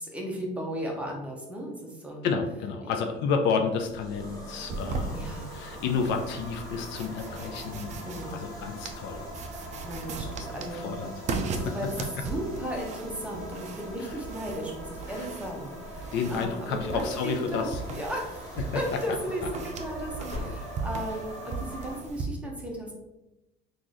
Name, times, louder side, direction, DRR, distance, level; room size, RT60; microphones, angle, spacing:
voice 1, 0.0-2.3 2.8-3.0 5.1-5.5 8.0-8.4 9.8-10.8 11.5-11.9 12.2-22.9, equal, 5° right, -1 dB, 0.8 m, -36 dB
voice 2, 2.2-9.2 10.2-11.1 11.7-11.8 14.0-14.2 16.1-17.8 18.6-19.0, left 5 dB, 60° left, 5 dB, 0.4 m, -31 dB
sound 1, 3.7-22.0, equal, 15° left, 1.1 m, -43 dB
sound 2, 4.7-22.3, right 4 dB, 35° right, 0.4 m, -38 dB
sound 3, 19.9-21.2, left 1 dB, 45° left, 1.4 m, -41 dB
3.0 x 2.5 x 3.8 m, 0.96 s
cardioid pair, 125°, 21 cm